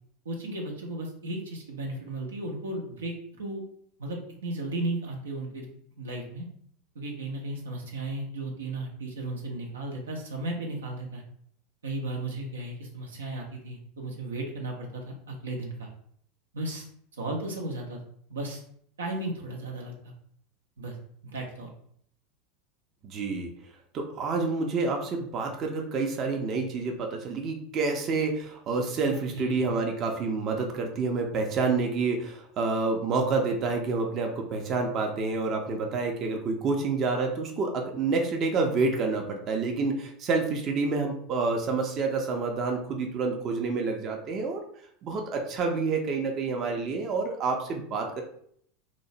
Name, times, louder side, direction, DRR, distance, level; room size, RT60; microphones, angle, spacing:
voice 1, 0.2-3.6 4.0-5.7 6.0-6.5 6.9-11.2 11.8-15.9 16.5-16.9 17.1-18.0 18.3-18.6 19.0-20.1 20.8-21.0 21.2-21.7 29.1-29.6, right 2 dB, 90° right, 0 dB, 0.6 m, -35 dB
voice 2, 23.0-23.5 23.9-44.6 45.0-48.2, right 4 dB, 45° right, 2 dB, 0.5 m, -28 dB
2.9 x 2.1 x 2.7 m, 0.64 s
hypercardioid pair, 90°, 0 cm